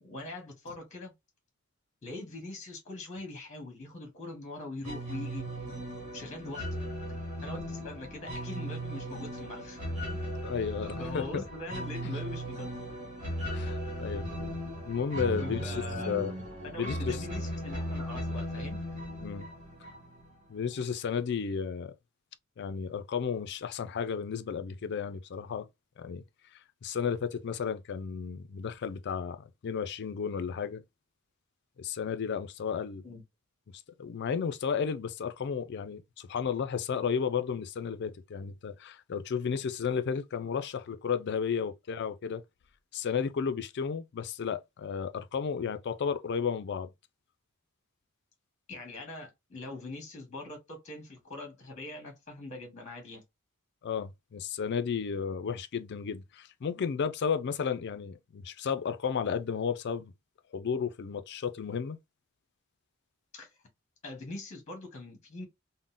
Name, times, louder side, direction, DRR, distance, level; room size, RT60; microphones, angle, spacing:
voice 1, 0.0-1.1 2.0-5.5 6.1-6.8 7.4-10.2 10.8-12.7 15.4-16.3 16.6-18.8 33.0-33.2 48.7-53.2 63.3-63.5 64.0-65.4, left 2 dB, 35° left, 1.0 m, -42 dB
sound 1, 4.8-20.3, equal, 35° right, 1.3 m, -37 dB
voice 2, 10.4-11.4 13.5-14.2 14.8-15.7 16.0-16.3 16.8-17.2 19.2-19.5 20.5-21.9 22.6-25.7 26.0-26.2 26.8-29.4 29.6-30.8 31.8-33.0 33.7-42.4 42.9-46.9 53.8-60.1 60.5-62.0, left 6 dB, 50° left, 0.4 m, -33 dB
3.7 x 2.1 x 2.4 m
head